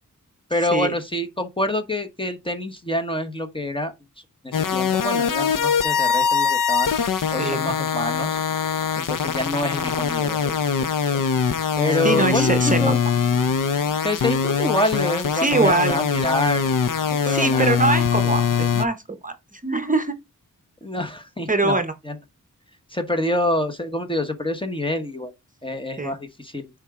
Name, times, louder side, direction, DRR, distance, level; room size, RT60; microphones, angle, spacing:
voice 1, 0.5-3.9 4.4-6.9 7.3-8.4 9.0-10.6 11.1-11.2 11.8-13.0 14.0-16.7 17.1-17.7 20.8-21.8 22.0-22.1 22.9-25.3 25.6-26.7, left 1 dB, 15° left, 1.0 m, -26 dB
sound 1, 4.5-18.9, left 6 dB, 70° left, 0.7 m, -22 dB
voice 2, 7.4-7.8 12.0-12.9 15.3-16.0 17.2-19.0 19.2-20.1 21.5-21.9 26.0-26.1, right 3 dB, 25° right, 0.8 m, -23 dB
7.2 x 4.8 x 3.6 m
wide cardioid pair, 125°, 33 cm